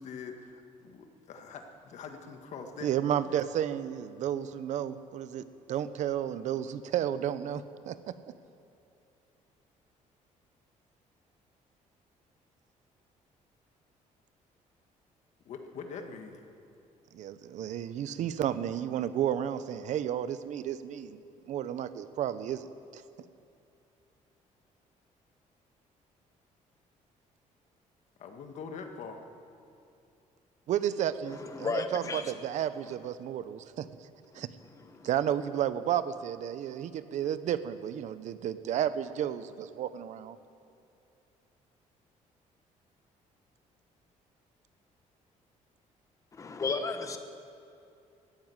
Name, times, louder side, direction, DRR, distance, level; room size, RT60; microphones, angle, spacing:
voice 1, 0.0-2.9 15.4-16.4 28.2-29.2, left 5 dB, 60° left, 5 dB, 1.6 m, -43 dB
voice 2, 2.8-5.4 5.7-8.0 17.1-21.2 21.5-22.7 22.9-23.0 30.7-33.9 34.3-34.5 35.0-40.4, right 10 dB, 60° right, 13 dB, 0.7 m, -32 dB
voice 3, 31.3-33.0 34.3-35.1 46.3-47.2, left 4 dB, 25° left, 7 dB, 1.1 m, -35 dB
15.0 x 10.0 x 9.6 m, 2.6 s
cardioid pair, 160°, 14 cm